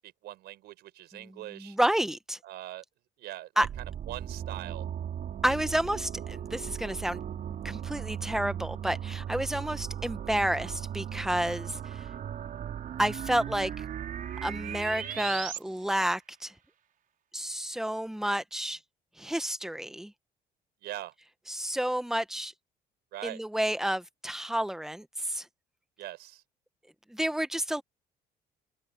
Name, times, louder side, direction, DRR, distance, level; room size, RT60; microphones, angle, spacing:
voice 1, 0.0-1.8 2.4-2.8 3.2-3.7 4.1-4.9 20.8-21.1 23.1-23.4 26.0-26.4, right 15 dB, 80° right, 4.5 m, -41 dB
voice 2, 1.1-2.4 3.6-3.7 5.4-7.2 7.6-12.1 13.0-13.8 14.4-16.5 17.3-18.8 19.2-20.1 21.5-22.5 23.2-25.5 27.1-27.8, right 1 dB, 5° right, 1.2 m, -30 dB
sound 1, 3.6-15.6, right 9 dB, 55° right, 5.4 m, -37 dB
cardioid pair, 110°, 17 cm